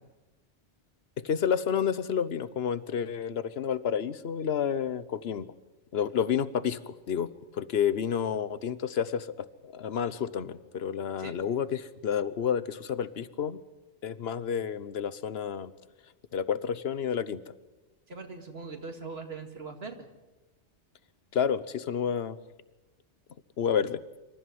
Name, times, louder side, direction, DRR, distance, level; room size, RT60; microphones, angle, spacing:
voice 1, 1.2-5.5 5.9-13.6 14.0-15.7 16.3-17.4 21.3-22.4 23.6-24.0, left 8 dB, 60° left, 16 dB, 1.1 m, -30 dB
voice 2, 18.1-20.1, right 4 dB, 60° right, 5 dB, 2.4 m, -41 dB
26.0 x 14.5 x 9.5 m, 1.1 s
omnidirectional pair, 1.2 m